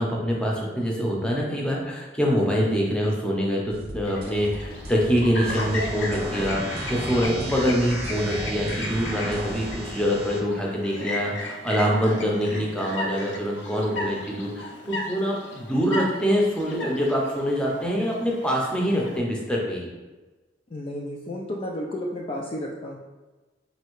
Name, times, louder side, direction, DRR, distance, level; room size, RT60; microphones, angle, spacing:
voice 1, 0.0-19.9, equal, 5° left, -2 dB, 0.7 m, -25 dB
sound 1, 3.7-9.7, right 1 dB, 55° right, 0.6 m, -39 dB
Chirp tweet, 4.0-19.2, left 1 dB, 70° left, 0.6 m, -36 dB
sound 2, 5.4-10.4, right 1 dB, 10° right, 1.0 m, -34 dB
voice 2, 20.7-23.0, left 1 dB, 30° left, -2 dB, 0.3 m, -32 dB
4.2 x 2.8 x 3.1 m, 1.2 s
head